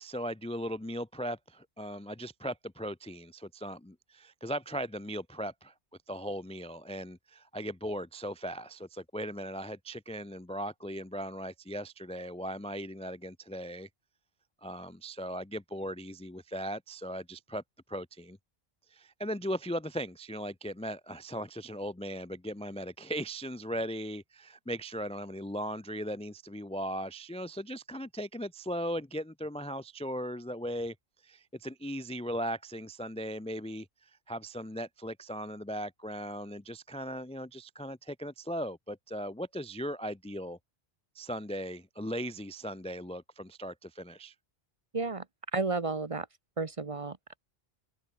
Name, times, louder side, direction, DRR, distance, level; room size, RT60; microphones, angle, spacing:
voice 1, 0.0-5.7 6.1-13.9 14.6-17.6 17.9-18.4 18.9-30.9 31.2-40.6 41.1-44.3, equal, 10° left, 0.5 m, -38 dB
voice 2, 44.9-45.2 45.5-46.3 46.6-47.4, right 3 dB, 35° right, 1.0 m, -32 dB
omnidirectional pair, 1.0 m